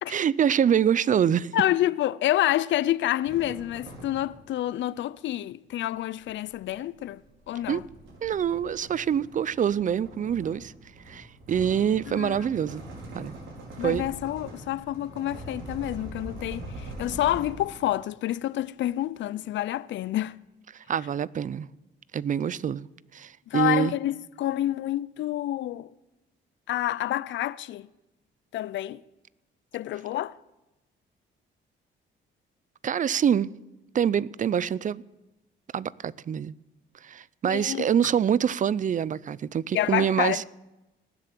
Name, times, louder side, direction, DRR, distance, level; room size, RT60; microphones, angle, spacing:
voice 1, 0.1-1.5 7.7-7.8 8.2-10.7 11.1-12.8 13.1-13.3 13.8-14.0 20.7-21.7 22.1-22.9 23.1-24.0 32.8-33.5 33.9-35.0 35.7-36.5 37.0-40.4, right 8 dB, 40° right, 0.5 m, -25 dB
voice 2, 1.5-7.2 7.5-7.8 12.1-12.4 13.8-20.4 23.5-25.9 26.7-27.9 28.5-29.0 29.7-30.4 37.5-37.9 39.7-40.4, left 13 dB, 70° left, 0.5 m, -28 dB
sound 1, 3.2-4.6 5.8-18.0, right 1 dB, 75° right, 4.3 m, -43 dB
19.0 x 7.8 x 7.6 m
cardioid pair, 90°, 20 cm